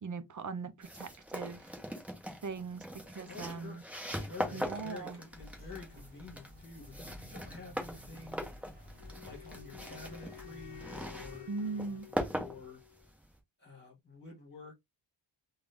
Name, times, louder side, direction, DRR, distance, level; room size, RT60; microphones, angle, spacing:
voice 1, 0.0-1.7 2.4-3.8 4.5-5.2 11.5-12.1, right 4 dB, 40° right, 0.5 m, -40 dB
sound 1, 0.8-13.3, equal, 5° right, 0.8 m, -41 dB
voice 2, 3.3-3.8 4.1-8.4 9.2-12.0 12.3-12.8 13.6-14.7, left 4 dB, 20° left, 1.8 m, -49 dB
sound 2, 5.3-11.4, left 1 dB, 20° right, 1.4 m, -52 dB
Wind instrument woodwind instrument, 9.0-13.1, left 9 dB, 50° left, 0.7 m, -52 dB
3.9 x 2.3 x 3.4 m
wide cardioid pair, 170°, 49 cm